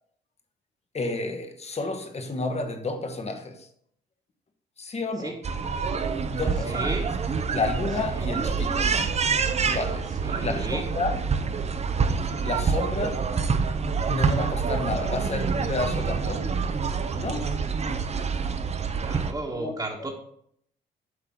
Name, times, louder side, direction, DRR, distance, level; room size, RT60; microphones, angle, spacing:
voice 1, 0.9-3.7 4.8-5.3 6.3-6.9 7.5-9.0 9.6-10.1 10.4-11.1 12.4-13.2 14.1-16.5 17.1-17.6 19.6-19.7, left 3 dB, 30° left, 6 dB, 1.3 m, -30 dB
sound 1, 5.4-19.3, right 5 dB, 35° right, 0.7 m, -27 dB
voice 2, 6.6-7.0 8.1-8.3 10.2-10.8 19.0-20.1, right 2 dB, 15° right, -4 dB, 1.4 m, -33 dB
8.1 x 5.5 x 3.7 m, 0.67 s
cardioid pair, 90°, 20 cm